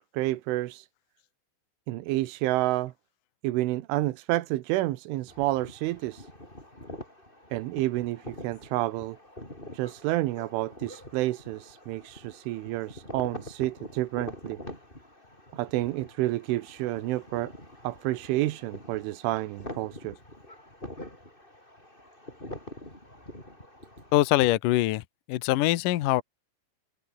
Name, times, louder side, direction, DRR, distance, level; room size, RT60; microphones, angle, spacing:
voice 1, 0.1-0.9 1.9-2.9 3.4-6.3 7.5-9.2 9.7-14.6 15.5-17.5 17.8-20.2, right 17 dB, 90° right, 3.6 m, -29 dB
sound 1, 5.3-24.5, left 1 dB, 10° left, 8.0 m, -45 dB
voice 2, 24.1-26.2, left 16 dB, 90° left, 1.8 m, -24 dB
omnidirectional pair, 5.4 m